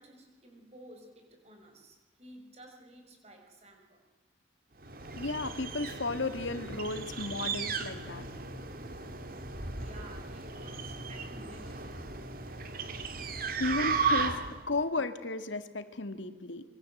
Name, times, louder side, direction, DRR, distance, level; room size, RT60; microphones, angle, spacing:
voice 1, 0.0-4.0 9.8-12.2, right 1 dB, 35° right, 3 dB, 6.0 m, -53 dB
sound 1, 4.8-14.7, right 4 dB, 50° right, 2.2 m, -35 dB
voice 2, 5.2-8.3 13.6-16.6, left 3 dB, 90° left, 9 dB, 2.0 m, -34 dB
25.5 x 23.5 x 7.9 m, 1.3 s
head